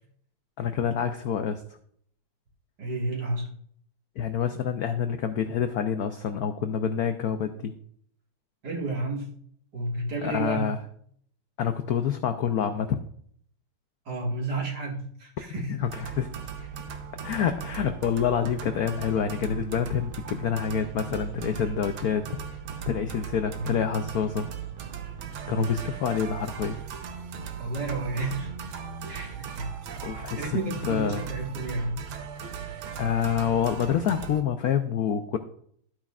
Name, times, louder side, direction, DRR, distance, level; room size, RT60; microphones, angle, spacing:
voice 1, 0.6-1.6 4.2-7.7 10.2-10.8 11.6-13.0 15.7-16.3 17.2-22.2 22.9-24.5 25.5-26.8 30.0-31.2 33.0-35.4, left 8 dB, 80° left, 8 dB, 0.8 m, -27 dB
voice 2, 2.8-3.5 8.6-9.3 9.7-10.7 14.1-15.8 17.2-17.4 23.5-23.8 25.4-25.7 27.6-28.5 29.1-29.7 30.4-32.1, right 2 dB, 55° right, -1 dB, 2.4 m, -31 dB
sound 1, 15.8-34.4, right 7 dB, 80° right, 1.7 m, -38 dB
12.5 x 8.8 x 2.4 m, 0.63 s
omnidirectional pair, 2.2 m